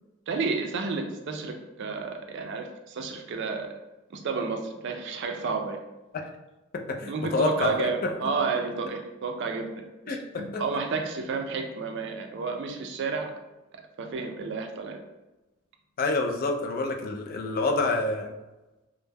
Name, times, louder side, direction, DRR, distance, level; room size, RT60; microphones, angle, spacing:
voice 1, 0.3-3.8 4.1-5.8 7.1-13.3 14.0-15.0, right 4 dB, 60° right, 4 dB, 0.4 m, -31 dB
voice 2, 6.7-8.1 10.1-10.6 16.0-18.3, left 3 dB, 45° left, 3 dB, 0.3 m, -28 dB
2.1 x 2.0 x 3.3 m, 1.0 s
head